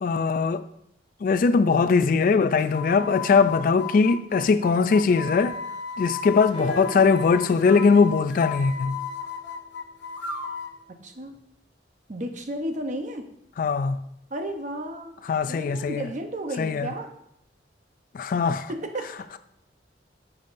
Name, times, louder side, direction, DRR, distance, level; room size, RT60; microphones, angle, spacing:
voice 1, 0.0-0.6 1.2-5.5 6.0-9.0 13.6-14.0 15.3-16.1 16.6-16.9 18.1-18.7, left 5 dB, 45° left, 0.3 m, -21 dB
sound 1, 2.6-10.8, left 5 dB, 75° left, 0.8 m, -35 dB
sound 2, 6.5-10.4 11.3-11.4, equal, 30° left, 2.7 m, -40 dB
voice 2, 11.0-11.3 12.1-13.3 14.3-15.1 15.5-17.1 18.7-19.1, right 1 dB, 40° right, 0.8 m, -33 dB
10.5 x 7.0 x 2.6 m
head